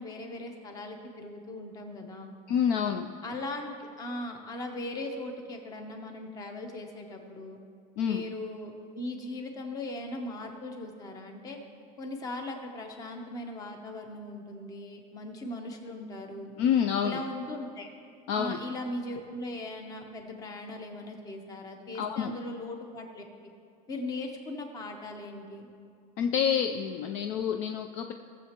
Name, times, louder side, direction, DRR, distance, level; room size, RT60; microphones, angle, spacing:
voice 1, 0.0-2.3 3.2-7.6 8.0-11.6 12.0-16.5 17.0-17.9 18.3-23.2 23.9-25.7, left 2 dB, 20° left, 4 dB, 0.8 m, -39 dB
voice 2, 2.5-3.1 8.0-8.2 16.6-17.2 18.3-18.6 22.0-22.3 26.2-28.1, left 8 dB, 50° left, 6 dB, 0.4 m, -27 dB
17.5 x 7.3 x 2.9 m, 2.3 s
cardioid pair, 180°, 17 cm